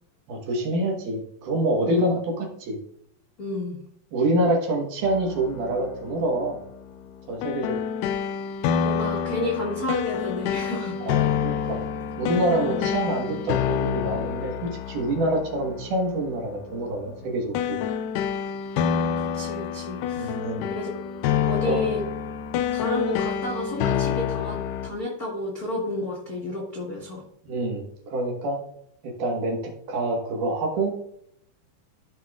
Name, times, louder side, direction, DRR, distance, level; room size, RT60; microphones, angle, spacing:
voice 1, 0.3-2.8 4.1-6.6 7.3-7.8 11.0-11.8 12.2-17.8 20.1-20.6 21.6-21.8 27.4-28.6 29.0-30.9, right 1 dB, 65° right, 1 dB, 2.8 m, -26 dB
voice 2, 1.8-2.1 3.4-3.8 8.8-11.2 11.5-11.7 12.6-12.9 19.1-20.3 20.7-20.9 21.5-22.0 22.7-24.6 24.8-27.2, left 1 dB, 65° left, -3 dB, 0.9 m, -31 dB
sound 1, 5.0-24.9, left 8 dB, 80° left, 2.0 m, -28 dB
13.5 x 5.5 x 2.4 m, 0.69 s
omnidirectional pair, 4.1 m